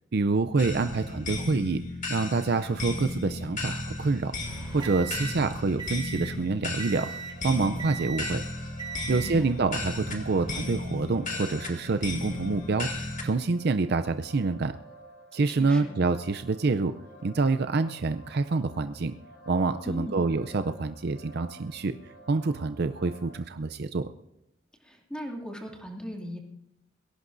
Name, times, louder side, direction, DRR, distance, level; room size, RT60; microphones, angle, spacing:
voice 1, 0.1-1.8 2.1-4.3 4.7-7.1 7.4-8.4 9.1-14.7 15.3-16.9 17.2-19.1 19.5-22.0 22.3-24.0, right 3 dB, 55° right, 10 dB, 0.5 m, -27 dB
sound 1, 0.6-13.3, left 2 dB, 40° left, 2.1 m, -35 dB
sound 2, 4.4-6.4 6.8-7.4 7.8-8.4 8.8-9.4 10.2-10.5, right 6 dB, 25° right, 3.4 m, -39 dB
sound 3, 7.3-23.4, right 1 dB, 80° left, 2.9 m, -51 dB
voice 2, 9.1-9.6 15.5-16.0 19.8-20.2 24.8-26.4, equal, 5° left, 0 dB, 2.5 m, -38 dB
22.0 x 17.5 x 2.6 m, 0.85 s
head